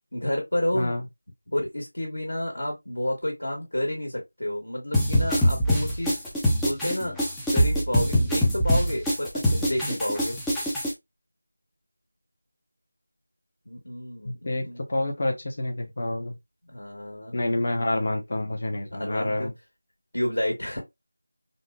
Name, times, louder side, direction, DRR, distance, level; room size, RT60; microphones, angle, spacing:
voice 1, 0.1-1.0 1.5-6.2 6.6-7.1 7.5-10.4 13.6-14.8 16.6-17.3 18.9-19.5 20.1-20.8, left 1 dB, 70° left, 1.3 m, -30 dB
sound 1, 4.9-10.9, equal, 5° left, 0.5 m, -23 dB
voice 2, 14.2-16.4 17.3-19.5, left 1 dB, 40° left, 0.8 m, -28 dB
4.0 x 2.1 x 2.2 m
figure-of-eight pair, 170°, 0 cm